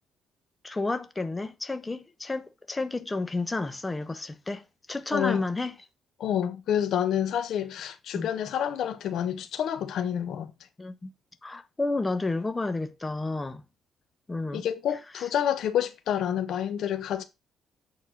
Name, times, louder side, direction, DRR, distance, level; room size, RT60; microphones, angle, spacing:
voice 1, 0.6-5.8 8.1-8.3 10.8-11.1 11.4-13.6 14.3-14.7 15.2-15.3, left 2 dB, 20° left, 1.1 m, -31 dB
voice 2, 5.1-5.4 6.2-10.5 14.5-17.2, left 9 dB, 75° left, 1.1 m, -28 dB
8.3 x 4.4 x 6.2 m
cardioid pair, 90°, 0 cm